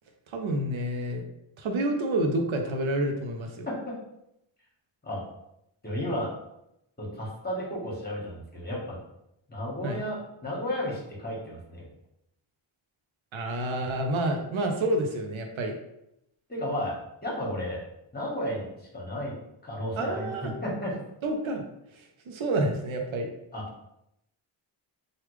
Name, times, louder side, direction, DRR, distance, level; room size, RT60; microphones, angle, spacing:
voice 1, 0.3-1.3 1.6-3.7 9.8-10.0 13.3-15.7 20.0-20.5 21.2-21.6 21.9-23.3, right 1 dB, 75° right, 3 dB, 0.6 m, -29 dB
voice 2, 3.7-4.0 5.0-5.2 5.8-6.3 7.0-9.0 9.5-11.9 16.5-17.0 17.2-17.8 18.1-18.7 18.9-19.3 19.6-20.9 23.5-23.6, equal, 20° left, -4 dB, 1.3 m, -33 dB
3.2 x 2.4 x 3.1 m, 0.82 s
cardioid pair, 75°, 48 cm